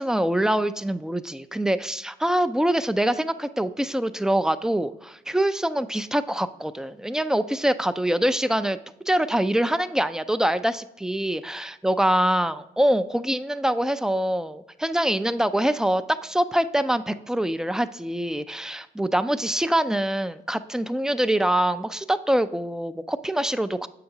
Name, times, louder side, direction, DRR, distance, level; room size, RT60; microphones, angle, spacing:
voice 1, 0.0-8.8 9.1-23.9, right 1 dB, 5° right, 11 dB, 0.3 m, -24 dB
7.6 x 5.8 x 2.7 m, 0.85 s
cardioid pair, 90°, 20 cm